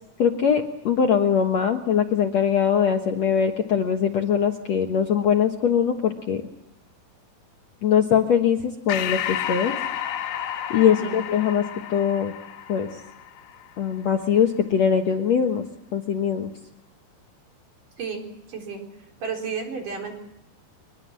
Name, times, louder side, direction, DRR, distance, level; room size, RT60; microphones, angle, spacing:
voice 1, 0.2-6.5 7.8-9.7 10.7-11.6 11.9-12.3 12.7-12.9 13.8-15.6 15.9-16.5, left 8 dB, 60° left, 4 dB, 2.0 m, -22 dB
Breathing, 8.9-13.8, left 10 dB, 80° left, 3.3 m, -31 dB
voice 2, 10.8-11.2 18.0-18.8 19.2-20.1, right 5 dB, 55° right, 2 dB, 5.6 m, -32 dB
23.5 x 22.5 x 7.5 m, 0.83 s
omnidirectional pair, 4.4 m